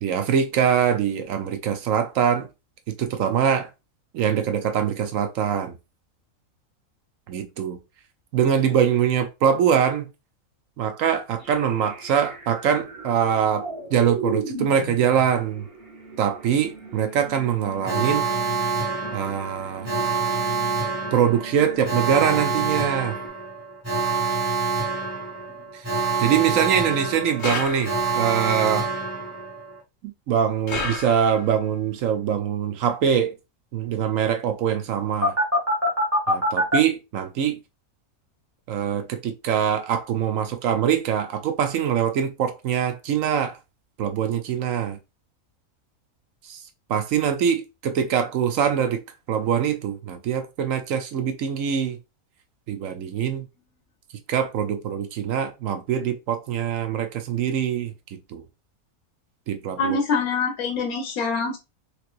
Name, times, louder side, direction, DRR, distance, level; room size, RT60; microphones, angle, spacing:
voice 1, 0.0-2.5 2.9-3.7 4.1-5.8 7.3-7.8 8.3-10.1 10.8-15.7 16.2-18.3 19.1-19.9 21.1-23.2 25.7-28.9 30.0-33.3 33.7-35.4 36.3-37.6 38.7-43.6 44.0-45.0 46.5-46.6 46.9-49.0 49.3-52.0 52.7-53.5 54.3-58.4 59.5-60.0, right 8 dB, 70° right, 1.0 m, -23 dB
sound 1, 11.4-23.3, right 3 dB, 45° right, 1.3 m, -38 dB
Alarm, 17.8-29.8 35.2-36.8, right 3 dB, 10° right, 1.1 m, -26 dB
sound 2, 27.4-28.3 30.7-31.6, left 3 dB, 40° left, 1.0 m, -31 dB
voice 2, 59.8-61.6, left 4 dB, 75° left, 1.3 m, -24 dB
3.3 x 3.2 x 2.4 m
omnidirectional pair, 1.5 m